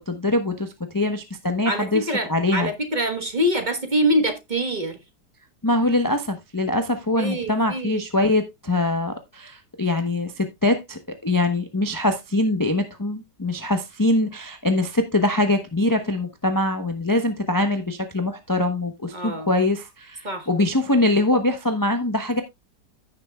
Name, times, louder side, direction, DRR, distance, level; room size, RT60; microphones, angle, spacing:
voice 1, 0.1-2.7 5.6-22.4, left 2 dB, 15° left, 0.7 m, -23 dB
voice 2, 1.6-5.0 7.2-8.0 19.1-19.6 20.2-20.6, equal, 30° right, 1.3 m, -25 dB
15.5 x 6.6 x 2.3 m
omnidirectional pair, 1.8 m